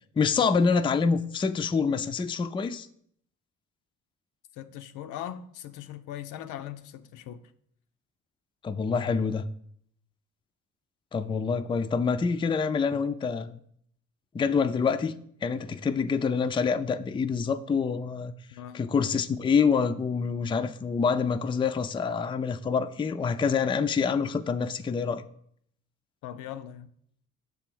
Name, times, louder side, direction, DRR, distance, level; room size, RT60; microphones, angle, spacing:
voice 1, 0.2-2.9 8.6-9.4 11.1-13.6 14.3-15.2 15.4-18.3 18.7-25.2, left 5 dB, 15° left, 0.3 m, -26 dB
voice 2, 4.5-7.5 18.5-18.9 26.2-26.9, left 11 dB, 85° left, 0.5 m, -40 dB
6.8 x 3.5 x 6.0 m
cardioid pair, 90°, 30 cm